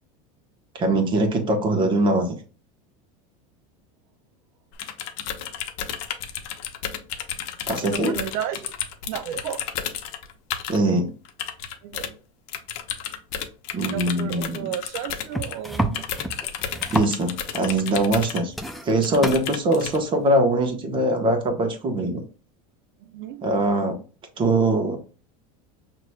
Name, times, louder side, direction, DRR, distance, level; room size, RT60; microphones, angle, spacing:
voice 1, 0.7-2.4 7.7-8.1 10.7-11.1 13.7-14.7 16.9-18.5 18.8-22.2 23.4-24.0 24.4-25.0, right 2 dB, 25° right, 4 dB, 1.2 m, -22 dB
sound 1, 4.7-10.8 11.2-12.1 12.5-18.7 19.0-20.0, left 9 dB, 60° left, 0.8 m, -32 dB
voice 2, 7.8-8.7 9.1-9.6 11.8-12.1 13.9-16.0 23.0-23.4, right 10 dB, 70° right, 9 dB, 0.5 m, -32 dB
sound 2, 15.3-17.6 18.0-18.2 18.5-19.4 20.5-20.6, right 1 dB, ahead, 0.4 m, -29 dB
6.2 x 2.9 x 2.3 m, 0.37 s
supercardioid pair, 140°, 18 cm